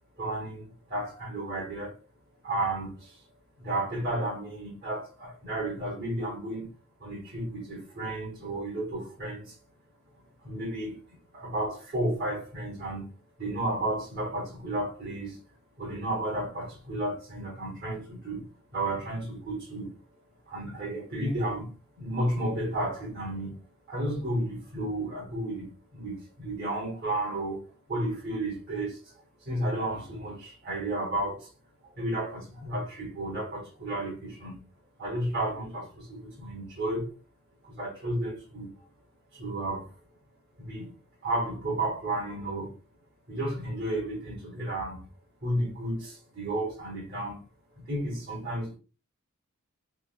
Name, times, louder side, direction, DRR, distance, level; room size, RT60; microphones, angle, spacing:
voice 1, 0.2-2.0 2.4-3.2 3.6-6.7 7.0-9.6 10.4-11.0 11.3-13.1 13.4-15.4 15.8-18.5 18.7-19.9 20.5-21.7 22.0-23.6 23.9-27.6 27.9-29.1 29.4-31.5 31.8-34.6 35.0-37.1 37.6-38.8 39.3-39.9 40.6-40.9 41.2-42.7 43.3-45.1 45.4-47.4 47.8-48.8, right 1 dB, 45° right, 1.0 m, -32 dB
3.3 x 3.0 x 2.4 m
head